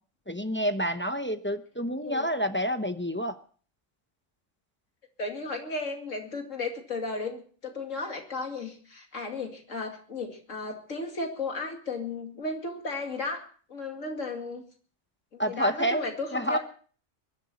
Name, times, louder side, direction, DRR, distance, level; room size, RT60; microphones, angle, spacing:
voice 1, 0.3-3.4 15.4-16.6, equal, 10° left, 8 dB, 0.7 m, -29 dB
voice 2, 5.2-13.4 13.7-14.6 15.3-16.6, left 3 dB, 85° left, 3 dB, 2.8 m, -34 dB
22.5 x 11.5 x 4.2 m, 0.43 s
omnidirectional pair, 1.3 m